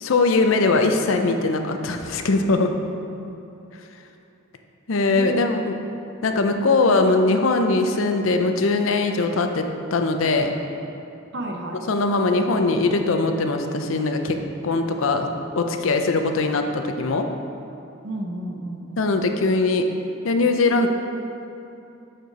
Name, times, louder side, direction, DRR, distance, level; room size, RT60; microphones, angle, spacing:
voice 1, 0.0-2.7 4.9-5.7 6.2-9.6 9.9-10.5 11.9-14.4 14.6-15.3 15.6-17.3 19.0-19.8 20.2-20.9, left 3 dB, 75° left, 5 dB, 0.5 m, -21 dB
voice 2, 5.1-5.6 11.3-11.8 18.0-19.1, right 1 dB, 60° right, 2 dB, 0.8 m, -31 dB
8.1 x 4.4 x 5.0 m, 2.8 s
head